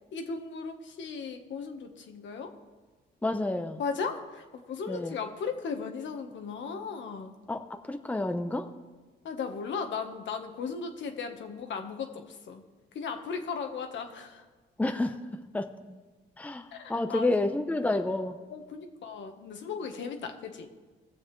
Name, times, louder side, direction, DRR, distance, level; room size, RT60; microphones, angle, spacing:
voice 1, 0.1-2.5 3.8-7.3 9.2-12.6 12.9-14.4 16.7-17.3 18.5-20.7, left 5 dB, 70° left, 5 dB, 1.4 m, -36 dB
voice 2, 3.2-3.8 4.9-5.2 7.5-8.7 14.8-15.2 15.5-16.0 16.4-18.4, left 2 dB, 5° left, 7 dB, 0.8 m, -30 dB
21.0 x 7.2 x 3.2 m, 1.3 s
cardioid pair, 90°, 20 cm